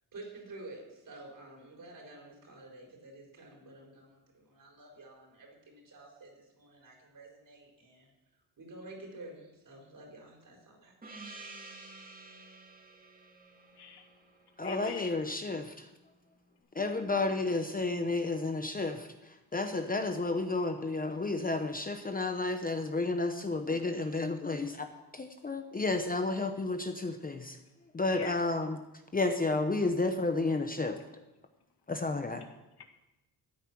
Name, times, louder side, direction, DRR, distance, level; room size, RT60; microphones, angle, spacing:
voice 1, 0.1-8.1 8.6-10.9, right 2 dB, 55° right, 0 dB, 4.6 m, -50 dB
Gong, 11.0-15.3, right 3 dB, 20° right, 2.4 m, -51 dB
voice 2, 13.8-14.1 14.6-15.3 28.1-28.4 32.8-32.9, left 7 dB, 75° left, 5 dB, 1.8 m, -44 dB
voice 3, 14.6-15.9 16.7-24.9 25.1-27.6 27.9-28.8 29.1-31.0 31.9-32.4, left 3 dB, 20° left, 6 dB, 0.8 m, -31 dB
14.0 x 9.1 x 6.0 m, 0.96 s
wide cardioid pair, 125°, 39 cm